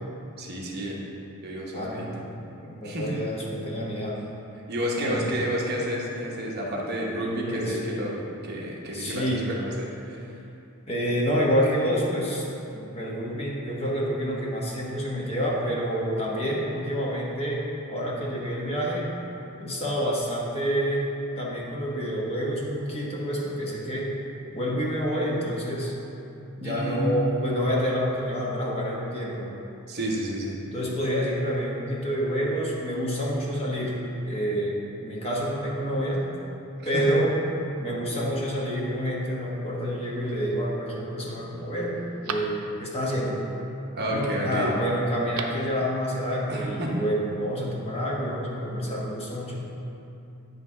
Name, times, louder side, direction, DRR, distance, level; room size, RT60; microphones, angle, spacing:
voice 1, 0.4-1.0 1.4-2.2 2.8-3.2 4.7-10.2 26.6-27.2 29.9-30.6 36.0-36.1 36.9-37.1 43.9-44.7 46.5-47.0, equal, 50° right, -3 dB, 1.0 m, -30 dB
voice 2, 1.7-2.2 2.6-4.2 5.0-5.3 7.5-7.8 8.9-9.5 10.9-12.4 12.7-19.1 19.6-21.1 21.4-24.2 24.5-26.0 26.6-29.5 30.7-36.2 36.8-37.3 37.8-42.0 42.2-43.4 44.1-49.6, equal, 25° left, -4 dB, 1.1 m, -28 dB
Telephone, 40.0-40.5 41.1-41.2 41.6-43.1 45.1-45.7 46.0-46.1, right 5 dB, 85° right, 0.5 m, -39 dB
9.7 x 3.2 x 5.5 m, 2.8 s
head